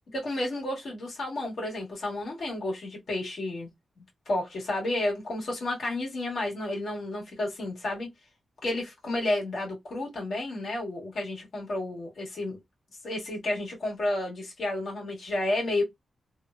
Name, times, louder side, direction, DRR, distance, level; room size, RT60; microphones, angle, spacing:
voice 1, 0.1-3.7 4.2-8.1 8.6-12.6 13.0-15.8, left 1 dB, 60° left, 1.5 m, -31 dB
2.9 x 2.2 x 2.4 m
wide cardioid pair, 145°, 0 cm